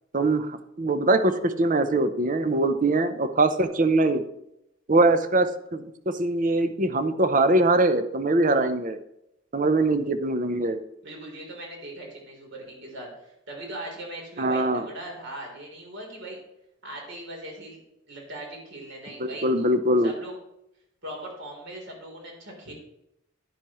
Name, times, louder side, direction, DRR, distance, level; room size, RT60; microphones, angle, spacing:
voice 1, 0.1-4.2 4.9-9.0 9.5-10.8 14.4-14.9 19.2-20.1, right 2 dB, 40° right, 10 dB, 0.7 m, -22 dB
voice 2, 11.0-16.4 16.8-17.8 18.1-19.7 20.0-20.3 21.0-22.7, right 1 dB, 60° right, -1 dB, 3.7 m, -39 dB
10.5 x 10.0 x 3.1 m, 0.82 s
head